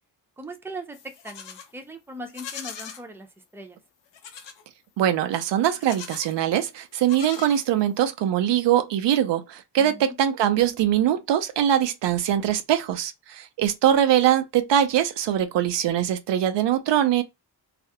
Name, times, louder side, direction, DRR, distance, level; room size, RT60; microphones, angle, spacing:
voice 1, 0.4-3.8 9.8-10.2, right 1 dB, 5° right, 0.5 m, -40 dB
Livestock farm animals working animals, 0.9-1.7 2.2-3.0 4.1-4.6 5.7-6.4 6.9-8.0, left 7 dB, 90° left, 0.6 m, -40 dB
voice 2, 5.0-17.2, right 10 dB, 85° right, 0.5 m, -22 dB
2.4 x 2.0 x 2.6 m
cardioid pair, 80°, 42 cm